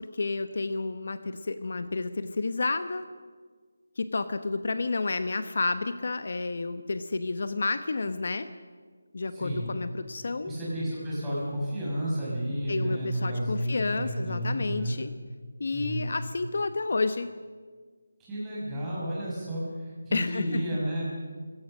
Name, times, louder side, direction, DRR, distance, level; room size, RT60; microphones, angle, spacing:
voice 1, 0.0-3.0 4.0-8.5 9.1-10.5 12.7-15.1 15.6-17.3 20.1-20.6, left 3 dB, 55° left, 11 dB, 1.0 m, -30 dB
voice 2, 9.3-9.7 10.4-15.0 15.7-16.1 18.2-21.0, equal, 10° right, -8 dB, 5.7 m, -31 dB
26.0 x 16.5 x 6.3 m, 1.5 s
figure-of-eight pair, 175°, 0 cm